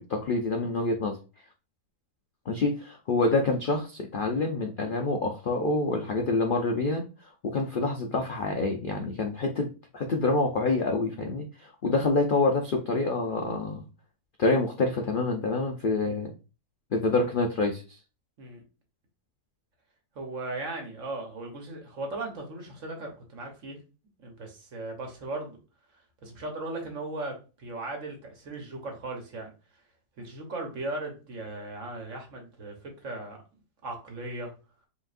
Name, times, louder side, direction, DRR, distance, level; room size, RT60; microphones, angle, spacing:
voice 1, 0.1-1.2 2.5-9.7 9.9-13.8 14.4-16.3 16.9-17.8, left 3 dB, 75° left, 2 dB, 0.4 m, -27 dB
voice 2, 20.1-23.8 24.2-25.6 26.2-29.5 30.2-33.4 33.8-34.5, right 2 dB, 55° right, 2 dB, 1.4 m, -37 dB
5.3 x 3.0 x 2.5 m, 0.33 s
omnidirectional pair, 1.7 m